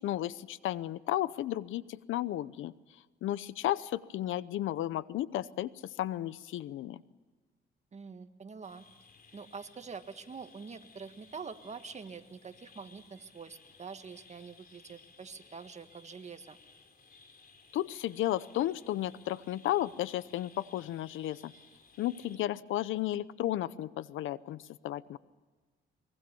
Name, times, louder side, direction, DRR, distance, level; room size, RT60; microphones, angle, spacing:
voice 1, 0.0-2.7 3.2-7.0 17.7-21.5 22.0-25.2, left 13 dB, 80° left, 18 dB, 0.8 m, -33 dB
voice 2, 7.9-8.9 9.3-16.6, right 5 dB, 35° right, 9 dB, 1.6 m, -45 dB
sound 1, 8.6-22.4, left 4 dB, 50° left, 4.2 m, -59 dB
23.5 x 22.5 x 7.0 m, 1.3 s
cardioid pair, 90°, 20 cm